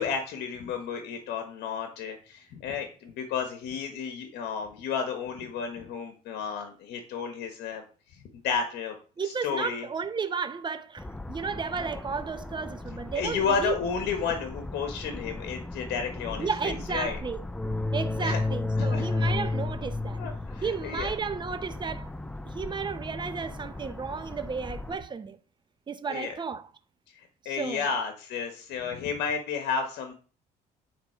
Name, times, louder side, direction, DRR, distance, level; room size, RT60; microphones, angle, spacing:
voice 1, 0.0-7.8 8.3-8.9 9.2-9.9 13.1-17.2 18.2-18.4 18.8-19.3 20.2-21.1 26.1-26.3 27.4-30.1, left 6 dB, 75° left, 1.4 m, -32 dB
voice 2, 9.2-13.7 16.4-17.4 17.9-20.2 20.6-25.4 25.9-26.7 27.4-27.9, right 5 dB, 25° right, 0.9 m, -33 dB
sound 1, 11.0-25.0, left 2 dB, 5° left, 0.4 m, -34 dB
9.3 x 4.2 x 4.4 m
cardioid pair, 110°, 17 cm